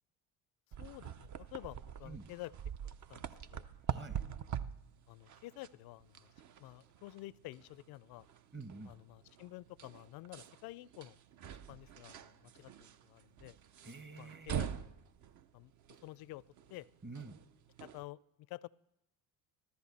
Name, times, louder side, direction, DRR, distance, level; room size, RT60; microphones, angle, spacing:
sound 1, 0.7-18.0, right 9 dB, 40° right, 0.7 m, -45 dB
voice 1, 0.8-2.5 2.8-3.7 5.1-6.3 6.6-8.3 8.9-11.2 11.7-12.7 13.0-13.6 14.2-14.9 15.5-15.7 16.0-16.4 16.7-16.9 17.2-17.3 17.8-18.7, left 18 dB, 55° left, 21 dB, 0.5 m, -50 dB
voice 2, 3.9-4.2 8.5-8.9 13.8-14.6 17.0-17.4, right 3 dB, 25° right, 10 dB, 1.1 m, -48 dB
14.0 x 13.0 x 4.2 m, 0.85 s
supercardioid pair, 80°, 45 cm